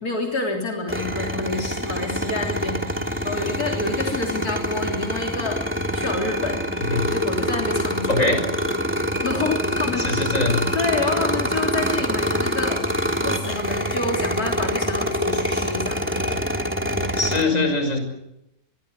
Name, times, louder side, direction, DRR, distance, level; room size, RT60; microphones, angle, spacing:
voice 1, 0.0-2.9 3.2-5.6 5.9-6.6 7.1-8.4 9.2-10.1 10.7-16.1, left 2 dB, 85° left, 0 dB, 3.9 m, -28 dB
sound 1, 0.9-17.4, equal, 5° right, 3.0 m, -25 dB
voice 2, 8.1-8.4 10.0-10.6 17.2-18.0, left 3 dB, 60° left, 6 dB, 6.5 m, -22 dB
26.5 x 22.0 x 8.2 m, 0.84 s
omnidirectional pair, 1.6 m